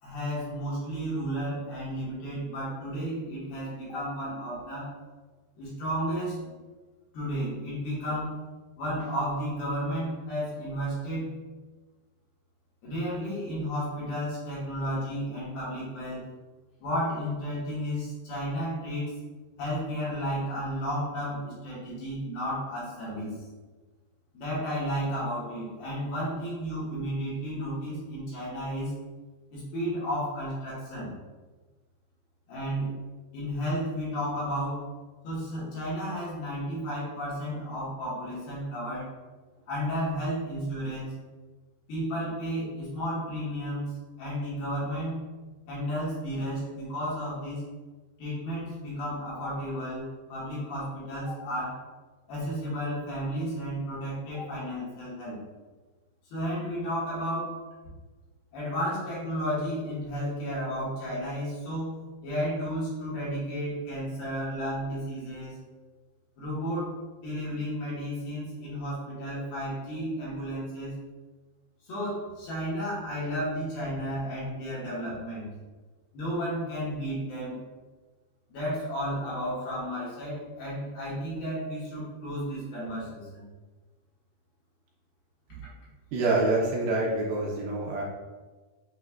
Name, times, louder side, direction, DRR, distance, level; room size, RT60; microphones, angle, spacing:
voice 1, 0.0-4.9 5.6-6.6 7.1-8.4 8.8-11.3 12.8-16.2 16.8-19.2 19.6-23.4 24.3-28.9 29.5-31.1 32.5-32.9 33.3-34.9 35.2-39.1 39.7-41.1 41.9-43.9 44.2-45.2 45.7-47.6 48.2-51.8 52.3-55.4 56.3-57.6 58.5-65.6 66.4-66.9 67.2-70.9 71.9-75.5 76.1-77.6 78.5-83.4 85.6-85.7, equal, 70° left, -8 dB, 3.1 m, -32 dB
voice 2, 86.1-88.0, right 2 dB, 75° right, -3 dB, 2.4 m, -26 dB
7.0 x 2.9 x 2.3 m, 1.3 s
omnidirectional pair, 4.6 m